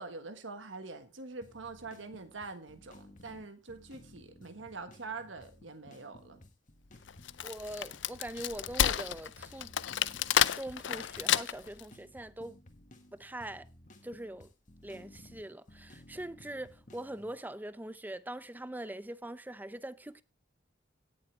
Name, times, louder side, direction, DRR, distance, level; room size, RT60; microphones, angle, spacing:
voice 1, 0.0-6.4, right 3 dB, 80° right, 1.4 m, -44 dB
sound 1, 1.4-17.3, left 1 dB, 45° left, 1.6 m, -57 dB
Wood, 7.1-11.8, left 10 dB, 70° left, 0.5 m, -30 dB
voice 2, 7.4-9.7 10.5-12.6 13.1-13.6 14.0-14.5 14.8-20.2, right 1 dB, 10° right, 0.6 m, -42 dB
17.0 x 7.3 x 3.3 m
head